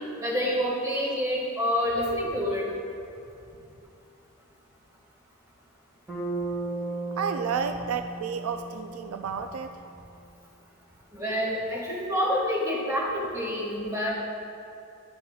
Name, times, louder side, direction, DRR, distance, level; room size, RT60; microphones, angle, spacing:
voice 1, 0.2-2.7 11.1-14.1, equal, 15° right, -5 dB, 1.8 m, -27 dB
Bass guitar, 6.1-10.2, right 2 dB, ahead, 1.8 m, -36 dB
voice 2, 7.2-9.8, right 6 dB, 75° right, 8 dB, 0.3 m, -31 dB
11.5 x 7.4 x 2.4 m, 2.6 s
head